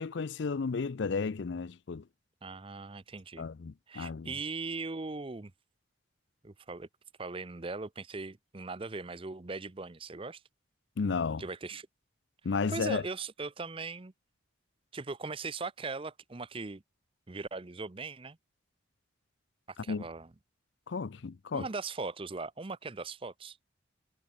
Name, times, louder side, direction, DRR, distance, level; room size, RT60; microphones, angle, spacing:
voice 1, 0.0-2.0 3.4-4.3 11.0-11.4 12.4-13.0 19.9-20.0 20.9-21.7, left 4 dB, 60° left, 0.5 m, -33 dB
voice 2, 2.4-3.5 3.9-5.5 6.4-6.9 7.2-10.4 11.4-11.9 12.7-14.1 14.9-16.8 17.3-18.4 19.8-20.3 21.5-23.6, right 3 dB, 25° right, 0.6 m, -39 dB
head